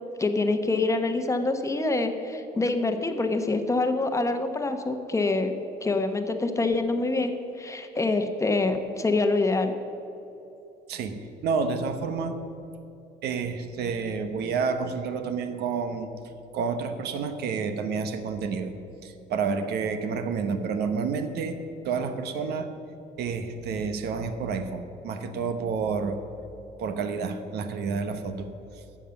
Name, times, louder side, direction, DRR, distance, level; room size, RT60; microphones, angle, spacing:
voice 1, 0.2-5.5 5.8-9.7, left 3 dB, 20° left, 6 dB, 1.0 m, -26 dB
voice 2, 10.9-12.4 13.2-16.1 16.5-18.7 19.0-21.6 21.8-22.7 23.2-26.2 26.8-28.5 28.7-28.8, right 5 dB, 70° right, 8 dB, 1.1 m, -29 dB
13.0 x 7.4 x 7.1 m, 2.9 s
cardioid pair, 110°, 17 cm